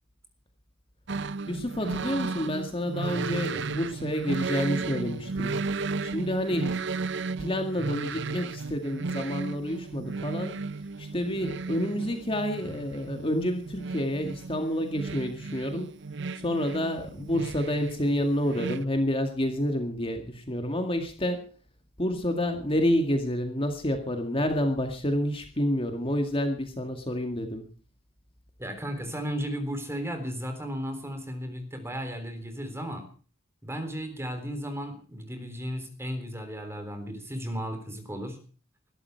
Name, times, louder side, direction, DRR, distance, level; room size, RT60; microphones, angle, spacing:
sound 1, 1.1-18.8, right 4 dB, 60° right, 0.7 m, -34 dB
voice 1, 1.5-6.8 7.4-10.6 11.0-16.0 16.3-21.5 22.0-27.7, equal, 25° left, 5 dB, 2.1 m, -29 dB
voice 2, 28.6-33.1 33.6-38.4, equal, 10° right, 7 dB, 3.6 m, -35 dB
21.0 x 13.0 x 4.6 m, 0.40 s
head